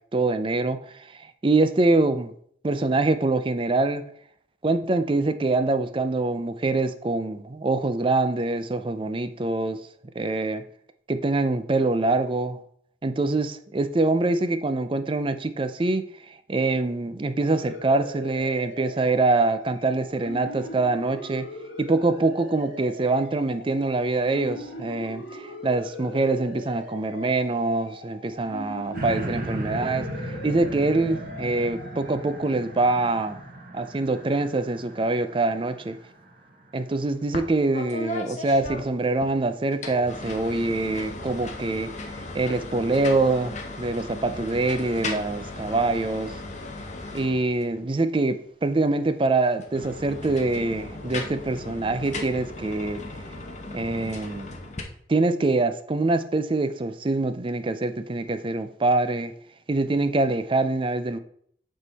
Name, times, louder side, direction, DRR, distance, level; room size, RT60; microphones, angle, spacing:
voice 1, 0.1-2.3 2.6-4.0 4.6-9.8 10.2-10.6 11.1-12.6 13.0-21.5 21.8-30.1 30.4-33.4 33.7-36.0 36.7-41.9 42.3-46.4 47.1-53.0 53.7-54.5 55.1-59.3 59.7-61.2, right 2 dB, 30° right, 11 dB, 0.4 m, -24 dB
sound 1, 17.4-33.8, left 1 dB, 80° left, 1.3 m, -41 dB
sound 2, 28.9-36.3 36.9-37.0, right 1 dB, 50° right, 1.1 m, -36 dB
sound 3, 37.3-37.5 37.7-39.3 39.7-47.8 49.5-54.8, left 2 dB, 40° left, 0.9 m, -36 dB
8.2 x 3.8 x 4.0 m, 0.64 s
head